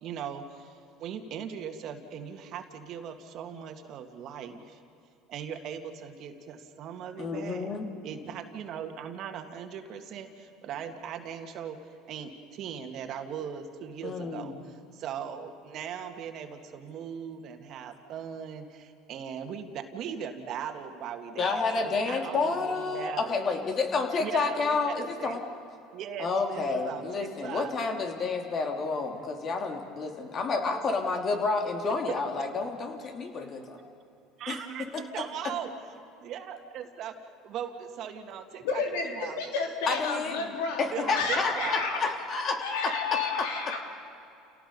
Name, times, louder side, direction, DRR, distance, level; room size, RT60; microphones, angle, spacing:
voice 1, 0.0-4.8 5.3-7.7 8.0-11.8 12.1-23.3 24.2-25.4 25.9-27.7 31.8-32.0 34.4-34.9 35.1-35.7 36.2-37.1 37.4-39.4 40.4-40.6 40.9-41.8, right 8 dB, 55° right, 6 dB, 1.9 m, -39 dB
voice 2, 7.2-7.9 14.0-14.5 21.4-25.4 26.2-33.8 34.5-35.5 39.9-40.4 40.8-43.5, left 4 dB, 40° left, 3 dB, 2.9 m, -30 dB
voice 3, 38.6-42.0 42.6-43.8, left 4 dB, 85° left, 2 dB, 3.3 m, -31 dB
30.0 x 18.0 x 5.4 m, 2.7 s
supercardioid pair, 105°, 0 cm